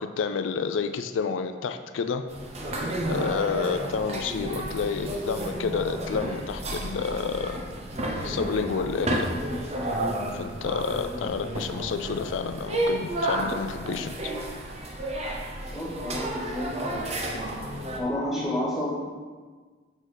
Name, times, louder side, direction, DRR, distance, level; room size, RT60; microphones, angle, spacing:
voice 1, 0.0-2.2 3.1-7.6 8.2-9.3 10.3-14.3, left 5 dB, 90° left, 8 dB, 0.4 m, -29 dB
sound 1, 2.3-18.0, right 1 dB, 35° right, 0.8 m, -31 dB
voice 2, 15.7-17.5 18.0-18.9, left 1 dB, ahead, -8 dB, 1.9 m, -31 dB
6.4 x 4.7 x 4.4 m, 1.5 s
head